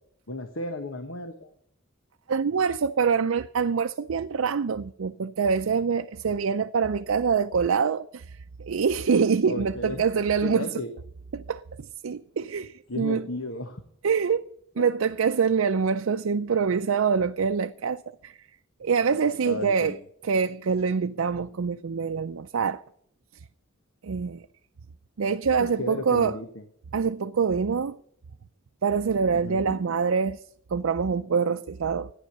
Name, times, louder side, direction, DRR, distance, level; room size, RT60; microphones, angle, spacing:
voice 1, 0.3-1.5 9.5-10.0 10.4-10.9 12.9-13.8 14.8-14.9 19.4-20.0 25.6-26.6 29.4-29.8, left 2 dB, 75° left, 1.2 m, -34 dB
voice 2, 2.3-10.8 11.3-13.3 14.0-14.4 14.8-18.4 18.8-20.0 20.2-22.8 24.0-24.4 25.2-26.4 26.9-28.0 28.8-30.4 30.7-32.1, right 6 dB, 90° right, 0.5 m, -25 dB
14.5 x 10.0 x 6.7 m
head